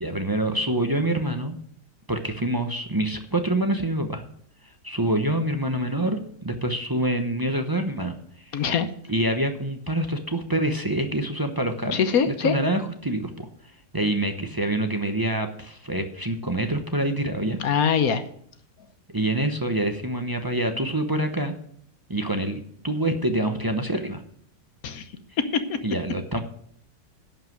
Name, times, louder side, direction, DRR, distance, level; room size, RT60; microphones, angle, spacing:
voice 1, 0.0-1.6 2.1-4.2 4.8-8.1 8.5-8.6 9.1-12.0 12.3-13.5 13.9-17.6 19.1-21.6 22.1-24.2 25.8-26.4, right 1 dB, 25° right, 6 dB, 0.4 m, -26 dB
voice 2, 8.5-8.9 11.9-12.5 17.6-18.2 24.8-25.0 25.4-25.8, left 6 dB, 60° left, 10 dB, 1.2 m, -23 dB
11.0 x 5.6 x 7.7 m, 0.65 s
omnidirectional pair, 2.0 m